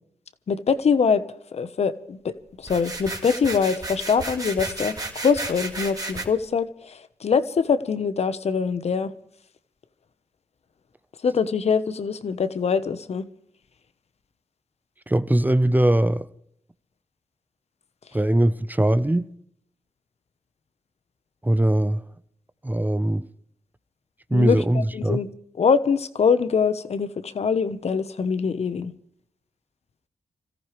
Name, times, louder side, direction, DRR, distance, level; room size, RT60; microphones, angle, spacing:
voice 1, 0.5-1.2 1.5-9.1 11.2-13.2 24.3-25.3 25.6-28.9, left 6 dB, 65° left, 1.2 m, -23 dB
sound 1, 2.6-6.3, right 2 dB, 30° right, 3.2 m, -33 dB
voice 2, 15.1-16.3 18.1-19.3 21.4-22.0 22.6-23.3 24.3-25.2, right 1 dB, 15° right, 0.9 m, -21 dB
27.0 x 14.5 x 3.4 m
cardioid pair, 50°, 12 cm